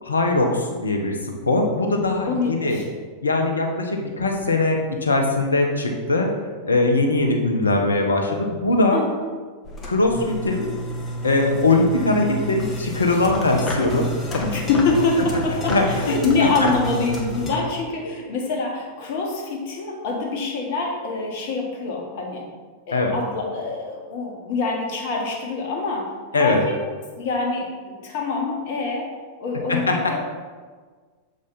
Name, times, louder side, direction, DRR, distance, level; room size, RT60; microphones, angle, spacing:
voice 1, 0.0-1.1 1.4-2.8 3.2-6.3 6.7-9.0 9.8-10.8 11.2-14.4 15.7-16.1 18.0-18.1 22.9-23.1 26.3-26.6 29.9-30.0, left 2 dB, 75° left, 3 dB, 0.9 m, -21 dB
voice 2, 2.3-2.9 8.9-9.2 14.4-22.4 22.9-26.1 26.3-26.8 27.2-29.1 29.4-30.2, left 3 dB, 50° left, 0 dB, 1.5 m, -25 dB
sound 1, 9.7-17.6, equal, 25° left, 1.2 m, -30 dB
6.9 x 4.9 x 4.2 m, 1.5 s
figure-of-eight pair, 90°, 0 cm